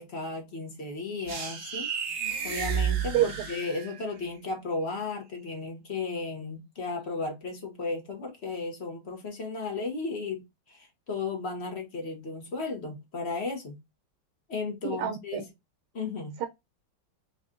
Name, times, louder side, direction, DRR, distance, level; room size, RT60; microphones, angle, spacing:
voice 1, 0.0-1.9 2.4-13.8 14.5-15.5 15.9-16.4, left 3 dB, 40° left, 1.1 m, -35 dB
sound 1, 1.3-4.2, right 7 dB, 40° right, 1.4 m, -31 dB
voice 2, 3.1-3.5 14.8-15.5 16.4-16.5, right 12 dB, 90° right, 1.5 m, -28 dB
4.0 x 2.5 x 3.6 m
omnidirectional pair, 2.3 m